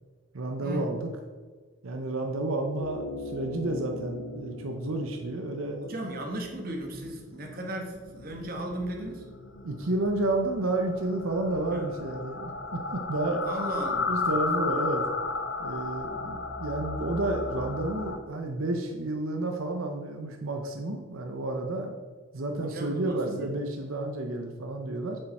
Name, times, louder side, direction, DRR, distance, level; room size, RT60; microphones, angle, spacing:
voice 1, 0.3-1.1 1.8-5.8 9.6-13.5 14.1-15.1 15.6-21.9 22.3-25.2, right 2 dB, 85° right, 3 dB, 0.8 m, -31 dB
sound 1, 2.8-18.2, left 3 dB, 65° left, 0.8 m, -35 dB
voice 2, 5.8-9.3 11.7-11.8 13.4-14.1 22.6-23.5, right 1 dB, 45° right, 1 dB, 1.4 m, -36 dB
7.6 x 6.7 x 4.3 m, 1.4 s
head